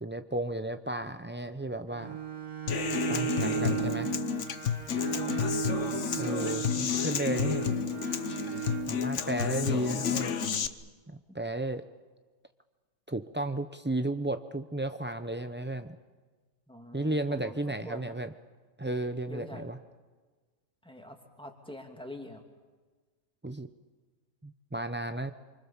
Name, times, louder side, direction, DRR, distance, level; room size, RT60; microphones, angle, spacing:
voice 1, 0.0-2.2 2.9-4.1 6.2-7.6 8.9-10.4 11.1-11.8 13.1-16.0 16.9-18.3 18.8-19.8 23.4-23.7 24.4-25.3, right 2 dB, 15° right, 8 dB, 0.3 m, -34 dB
Bowed string instrument, 1.9-9.0, right 11 dB, 75° right, 2.6 m, -35 dB
Human voice / Acoustic guitar, 2.7-10.7, left 7 dB, 55° left, 1.3 m, -31 dB
voice 2, 5.1-5.5 16.7-18.2 19.3-19.7 20.8-22.4, left 1 dB, 5° left, 4 dB, 2.6 m, -45 dB
27.5 x 25.0 x 7.3 m, 1.4 s
omnidirectional pair, 1.6 m